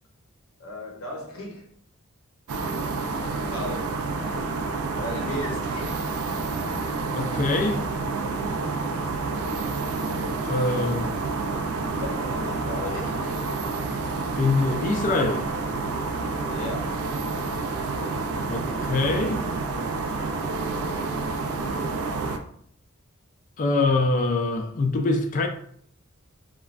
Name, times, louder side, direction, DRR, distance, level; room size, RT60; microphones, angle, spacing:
voice 1, 0.6-1.7 3.5-4.0 4.9-6.0 10.7-11.0 12.0-13.4 16.5-17.1, left 1 dB, 80° left, 0.7 m, -36 dB
sound 1, 2.5-22.4, right 3 dB, 85° right, 0.4 m, -29 dB
voice 2, 7.1-7.9 10.4-11.2 14.4-15.5 18.4-19.4 23.6-25.5, left 3 dB, 40° left, 0.3 m, -24 dB
3.1 x 2.2 x 2.4 m
head